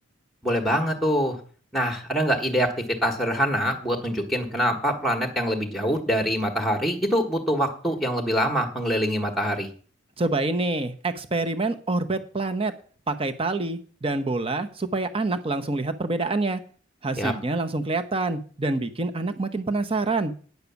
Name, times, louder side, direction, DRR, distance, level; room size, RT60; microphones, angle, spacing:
voice 1, 0.4-1.4 1.7-2.7 3.0-9.7 17.2-17.3, equal, ahead, 4 dB, 1.3 m, -24 dB
voice 2, 10.2-12.7 13.1-16.6 17.0-20.3, right 2 dB, 30° right, 8 dB, 0.9 m, -26 dB
9.4 x 6.7 x 7.0 m, 0.42 s
head